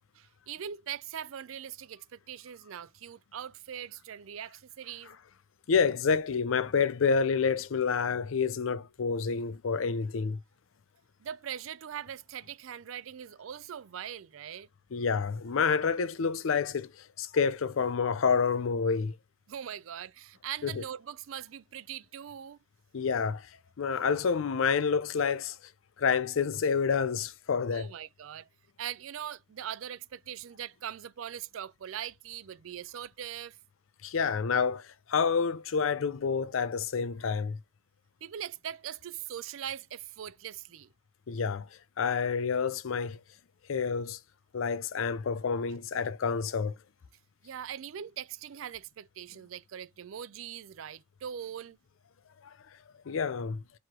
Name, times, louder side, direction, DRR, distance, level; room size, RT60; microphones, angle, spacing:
voice 1, 0.1-5.2 11.2-14.7 19.5-22.6 27.7-28.5 28.8-33.6 38.2-40.9 47.4-51.8, right 9 dB, 90° right, 0.4 m, -41 dB
voice 2, 5.7-10.4 14.9-19.2 20.6-20.8 22.9-25.6 26.0-27.9 34.0-37.6 41.3-41.7 42.0-43.2 43.7-44.2 44.5-46.7 52.4-52.5 53.1-53.6, left 5 dB, 90° left, 0.5 m, -28 dB
4.6 x 3.0 x 3.7 m
head